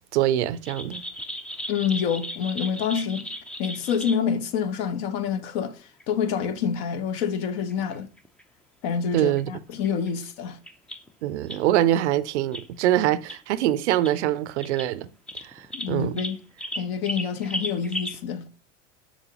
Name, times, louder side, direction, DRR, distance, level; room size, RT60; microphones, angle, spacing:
voice 1, 0.1-1.0 9.1-9.5 11.2-15.1 15.4-16.2, right 13 dB, 65° right, 0.5 m, -24 dB
sound 1, 0.6-4.2 5.4-5.5 6.0-6.1 6.4-6.5 6.8-6.9 7.2-7.3 7.7-8.4 8.9-9.4 9.7-10.1 10.7-11.1 11.5-11.6 12.5-12.7 13.3-13.4 13.9-14.1 14.6-14.9 15.3-18.2, equal, 5° left, 0.4 m, -35 dB
voice 2, 1.7-3.3 3.6-5.8 6.1-8.1 8.8-10.6 15.7-16.4 16.8-18.5, left 7 dB, 50° left, 0.8 m, -27 dB
7.1 x 5.1 x 2.8 m
figure-of-eight pair, 70°, 38 cm